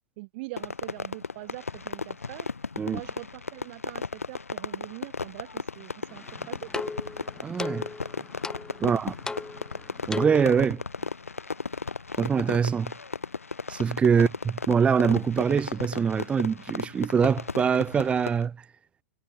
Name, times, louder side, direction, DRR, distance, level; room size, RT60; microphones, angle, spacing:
voice 1, 0.2-2.5 2.8-6.9 8.8-9.0 11.0-11.1 14.1-14.3, right 25 dB, 50° right, 6.8 m, -43 dB
Fireworks, 0.6-18.5, left 4 dB, 85° left, 5.8 m, -35 dB
sound 1, 6.1-10.7, left 3 dB, 10° left, 5.2 m, -37 dB
voice 2, 7.4-7.9 8.8-9.1 10.1-10.8 12.2-12.9 13.7-14.3 14.7-18.6, right 6 dB, 15° right, 0.5 m, -23 dB
figure-of-eight pair, 105°, 7 cm